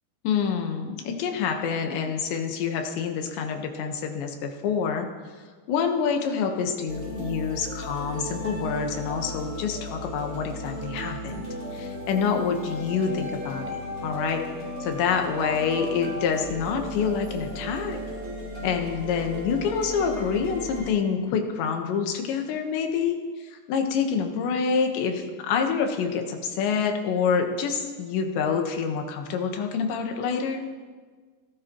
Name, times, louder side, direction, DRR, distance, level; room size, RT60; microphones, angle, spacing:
voice 1, 0.3-5.1 5.7-11.5 11.7-14.4 14.8-18.0 18.6-30.6, left 6 dB, 85° left, 4 dB, 3.6 m, -27 dB
sound 1, 6.9-20.9, equal, 20° right, 4.3 m, -35 dB
29.0 x 13.5 x 3.1 m, 1.5 s
omnidirectional pair, 4.9 m